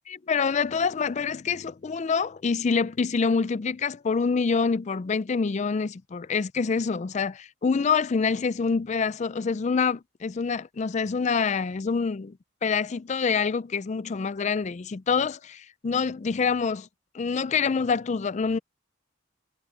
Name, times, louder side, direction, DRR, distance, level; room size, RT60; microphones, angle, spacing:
voice 1, 0.3-16.9 17.1-18.6, left 5 dB, 35° left, 0.4 m, -26 dB
head